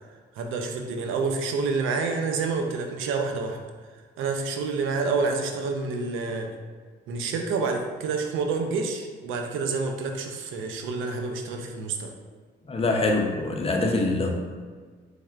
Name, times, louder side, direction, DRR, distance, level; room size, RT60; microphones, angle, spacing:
voice 1, 0.3-3.6 4.2-6.5 7.1-12.1, right 4 dB, 90° right, 4 dB, 0.5 m, -28 dB
voice 2, 12.7-14.3, left 2 dB, 30° left, 1 dB, 0.6 m, -24 dB
4.2 x 3.4 x 2.4 m, 1.5 s
cardioid pair, 90°, 20 cm